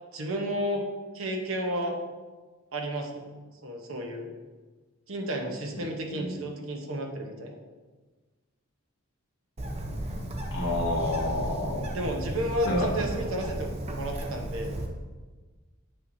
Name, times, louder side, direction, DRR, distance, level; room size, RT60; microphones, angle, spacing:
voice 1, 0.1-0.8 1.1-2.0 2.7-3.2 3.6-4.3 5.1-7.6 11.9-14.8, right 1 dB, 65° right, 2 dB, 0.9 m, -32 dB
Bird, 9.6-14.9, right 1 dB, 30° right, 0.6 m, -34 dB
voice 2, 10.5-11.9 12.6-12.9, left 1 dB, 60° left, -2 dB, 1.4 m, -29 dB
7.5 x 5.8 x 2.6 m, 1.3 s
head